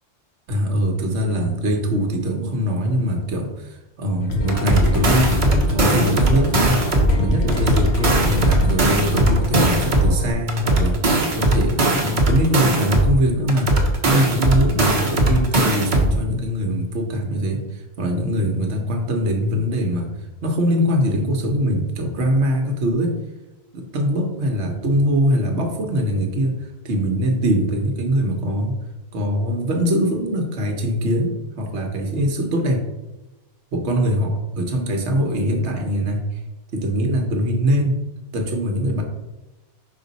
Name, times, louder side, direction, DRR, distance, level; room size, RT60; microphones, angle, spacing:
voice 1, 0.5-6.8 7.1-13.7 14.1-20.1 20.4-23.2 23.7-26.6 26.8-28.8 29.1-32.9 33.7-36.4 36.7-38.0 38.3-39.0, equal, 75° right, 3 dB, 1.3 m, -22 dB
sound 1, 4.2-10.3, left 1 dB, 65° left, 1.3 m, -24 dB
sound 2, 4.5-7.1 7.5-10.1 10.5-13.1 13.5-16.1, right 1 dB, 45° right, 1.2 m, -19 dB
5.3 x 5.2 x 4.0 m, 1.0 s
omnidirectional pair, 1.2 m